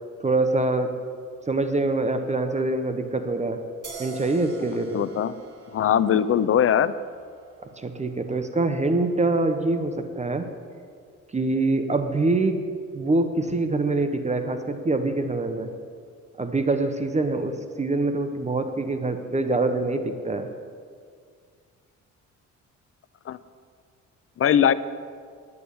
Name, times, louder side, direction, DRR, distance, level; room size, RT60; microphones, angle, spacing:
voice 1, 0.2-0.9 1.5-3.6 4.0-5.0 7.8-10.5 11.3-12.6 12.9-15.7 16.4-20.5, right 2 dB, 25° right, 8 dB, 1.0 m, -25 dB
sound 1, 3.8-11.1, right 3 dB, 55° right, 3.0 m, -46 dB
voice 2, 4.9-5.4 5.7-7.0 23.3-23.4 24.4-24.7, left 9 dB, 45° left, 16 dB, 0.6 m, -20 dB
9.9 x 9.6 x 8.4 m, 2.1 s
cardioid pair, 90°, 30 cm